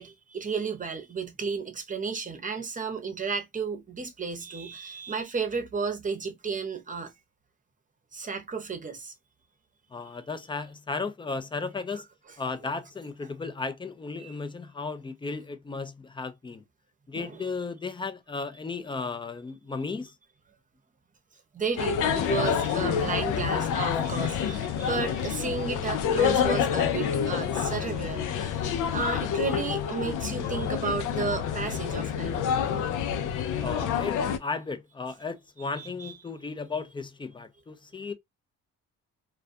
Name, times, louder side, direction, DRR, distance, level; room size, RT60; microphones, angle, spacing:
voice 1, 0.0-7.1 8.1-9.1 11.9-12.0 14.2-14.3 17.1-17.5 21.5-28.6 28.9-32.4 35.7-36.1, right 5 dB, 25° right, 0.8 m, -33 dB
voice 2, 9.9-12.1 12.4-16.6 17.1-20.1 33.6-38.1, left 4 dB, 15° left, 0.4 m, -35 dB
sound 1, 21.8-34.4, left 8 dB, 85° left, 0.5 m, -28 dB
2.3 x 2.2 x 2.5 m
cardioid pair, 90°, 30 cm